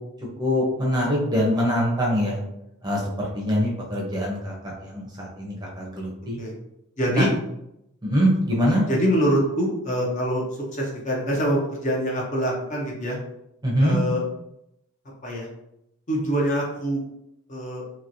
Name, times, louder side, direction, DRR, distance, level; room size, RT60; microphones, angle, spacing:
voice 1, 0.4-2.4 2.8-6.4 7.1-7.3 8.0-8.8 13.6-14.0, equal, 20° right, -4 dB, 0.6 m, -23 dB
voice 2, 7.0-7.3 8.7-10.4 10.7-13.2 13.8-14.2 15.2-15.5 16.1-17.0 17.5-17.8, equal, 35° left, -2 dB, 0.6 m, -24 dB
2.9 x 2.8 x 2.6 m, 0.82 s
head